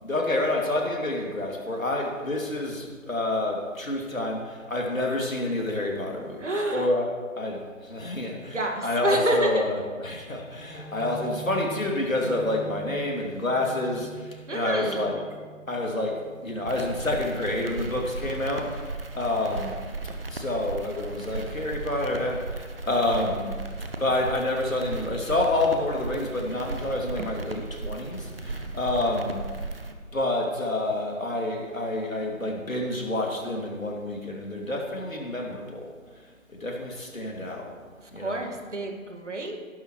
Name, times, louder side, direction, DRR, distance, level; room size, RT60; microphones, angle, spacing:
voice 1, 0.0-7.0 7.4-8.6 8.8-9.7 10.0-15.2 15.7-19.8 20.3-23.6 24.0-29.5 30.1-35.9 36.5-37.7 38.1-38.4, left 2 dB, 75° left, 0 dB, 2.9 m, -28 dB
voice 2, 6.4-6.9 8.5-9.6 14.5-15.1 38.2-39.6, right 1 dB, 60° right, 3 dB, 2.0 m, -28 dB
sound 1, 10.7-18.0, right 5 dB, 5° right, 3.0 m, -44 dB
sound 2, 16.7-29.9, right 3 dB, 45° right, 1.0 m, -36 dB
16.5 x 11.5 x 3.2 m, 1.5 s
figure-of-eight pair, 160°, 41 cm